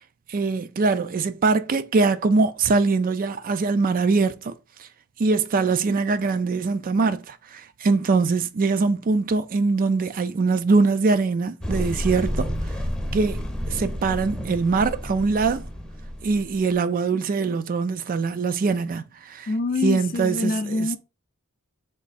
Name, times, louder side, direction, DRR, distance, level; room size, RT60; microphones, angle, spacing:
voice 1, 0.3-4.5 4.8-4.9 5.2-12.5 13.1-15.7 16.2-19.5 19.8-20.9, right 4 dB, 40° right, 0.4 m, -23 dB
sound 1, 11.6-16.7, equal, 5° left, 0.7 m, -30 dB
voice 2, 19.5-21.0, left 3 dB, 40° left, 0.5 m, -25 dB
3.6 x 3.1 x 4.1 m
head